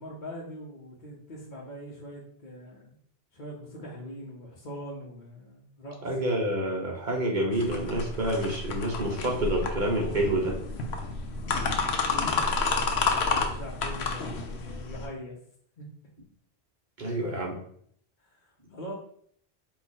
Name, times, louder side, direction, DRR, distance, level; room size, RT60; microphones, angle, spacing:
voice 1, 0.0-3.0 3.3-6.0 12.0-15.4 15.8-15.9 18.2-18.9, equal, 50° left, -5 dB, 1.0 m, -42 dB
voice 2, 6.0-10.6 17.0-17.6, right 1 dB, 50° right, -1 dB, 1.2 m, -28 dB
sound 1, 7.5-15.1, left 4 dB, 80° left, 1.0 m, -30 dB
4.6 x 2.5 x 4.1 m, 0.63 s
omnidirectional pair, 1.1 m